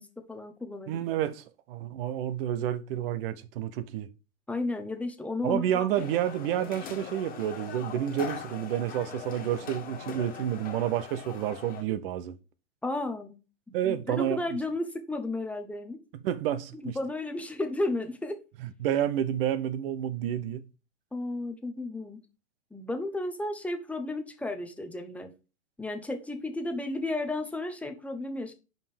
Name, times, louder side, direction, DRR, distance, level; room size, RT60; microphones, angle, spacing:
voice 1, 0.0-1.0 4.5-6.1 12.8-13.4 13.7-16.0 16.8-18.4 21.1-22.2 22.7-25.3 25.8-28.5, left 2 dB, 5° left, 0.9 m, -33 dB
voice 2, 0.9-4.1 5.4-12.4 13.7-14.4 16.2-17.0 18.8-20.7, right 11 dB, 50° right, 1.0 m, -30 dB
sound 1, 5.9-11.8, left 7 dB, 25° left, 1.8 m, -41 dB
5.4 x 5.4 x 5.1 m
hypercardioid pair, 125°, 35 cm